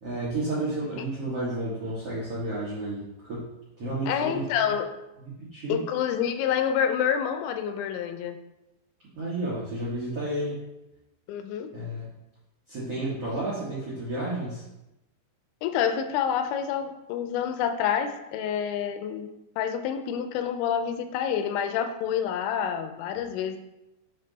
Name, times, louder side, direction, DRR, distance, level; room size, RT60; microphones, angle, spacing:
voice 1, 0.0-3.4 3.8-4.4 5.2-5.8 9.2-10.6 11.7-12.1 12.7-14.6, right 1 dB, 85° right, -8 dB, 1.3 m, -31 dB
voice 2, 4.1-4.9 5.7-8.4 11.3-11.7 15.6-19.3 19.6-23.6, left 8 dB, 85° left, 8 dB, 2.9 m, -28 dB
7.5 x 4.4 x 3.9 m, 0.94 s
omnidirectional pair, 5.2 m